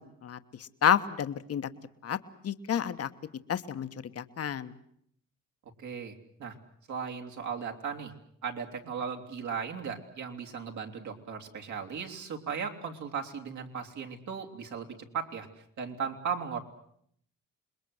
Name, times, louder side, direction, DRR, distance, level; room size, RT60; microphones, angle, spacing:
voice 1, 0.0-1.7 2.0-2.2 2.4-3.1 3.5-3.9 4.1-4.7, left 9 dB, 50° left, 11 dB, 1.3 m, -30 dB
voice 2, 5.8-6.5 6.9-8.1 8.4-15.5 15.8-16.6, right 6 dB, 70° right, 2 dB, 3.3 m, -37 dB
27.5 x 21.5 x 7.9 m, 0.69 s
cardioid pair, 90°, 30 cm